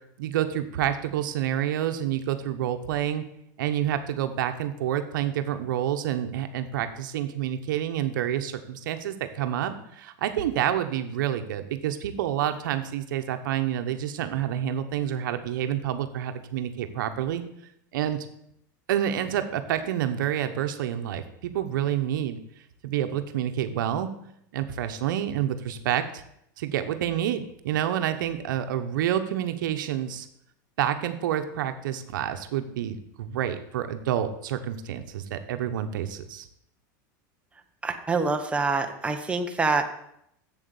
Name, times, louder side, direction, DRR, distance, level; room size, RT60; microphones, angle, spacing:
voice 1, 0.2-3.2 3.6-17.4 17.9-18.3 18.9-22.4 22.8-24.1 24.5-26.2 26.6-30.3 30.8-36.5, right 10 dB, 80° right, 8 dB, 1.0 m, -28 dB
voice 2, 37.8-39.8, right 3 dB, 10° right, 4 dB, 1.0 m, -26 dB
7.7 x 7.3 x 7.1 m, 0.75 s
supercardioid pair, 125°, 10 cm